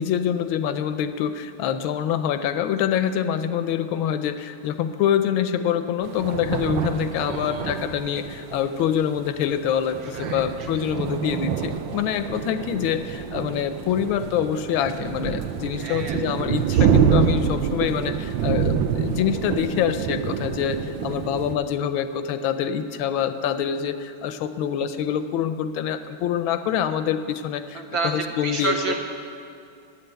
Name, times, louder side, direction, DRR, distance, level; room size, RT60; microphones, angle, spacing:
voice 1, 0.0-28.8, left 9 dB, 80° left, 10 dB, 1.3 m, -25 dB
Lightning & Thunder, 6.0-21.6, right 7 dB, 75° right, 1.3 m, -26 dB
voice 2, 7.2-7.9 10.0-10.8 15.8-16.2 16.7-16.9 27.7-29.0, right 4 dB, 55° right, 1 dB, 1.2 m, -30 dB
8.9 x 7.9 x 9.0 m, 2.4 s
omnidirectional pair, 2.2 m